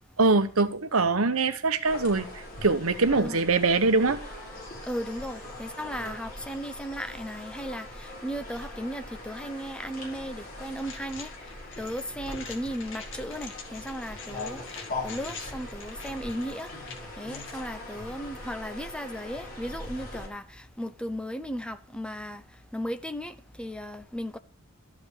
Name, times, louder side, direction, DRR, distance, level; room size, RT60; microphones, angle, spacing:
voice 1, 0.2-4.2, right 3 dB, 75° right, 1.1 m, -23 dB
sound 1, 1.8-20.3, left 1 dB, 40° left, 5.6 m, -41 dB
voice 2, 4.8-16.8 17.1-24.4, equal, 5° left, 0.7 m, -36 dB
sound 2, 10.8-17.7, left 6 dB, 60° left, 2.1 m, -45 dB
13.0 x 5.3 x 8.3 m
head